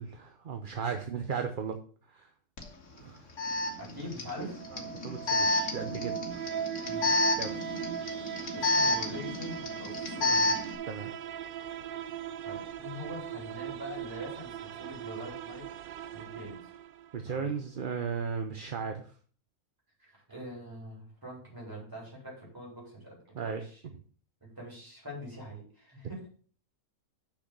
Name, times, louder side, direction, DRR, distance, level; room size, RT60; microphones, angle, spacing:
voice 1, 0.0-1.8 2.1-2.3 3.0-3.3 4.7-6.9 7.4-7.5 10.8-11.1 17.1-19.1 23.4-23.6, right 6 dB, 45° right, 6 dB, 0.8 m, -36 dB
Alarm, 2.6-2.7 3.4-10.8, left 2 dB, 60° left, 1.7 m, -30 dB
voice 2, 3.8-4.6 6.9-7.1 8.5-10.7 12.4-15.7 16.1-16.6 17.3-17.5 20.0-23.8 24.4-26.3, left 1 dB, 15° right, -4 dB, 4.1 m, -44 dB
sound 1, 4.5-17.3, right 9 dB, 75° right, 0.4 m, -39 dB
6.2 x 5.9 x 6.8 m, 0.43 s
omnidirectional pair, 1.5 m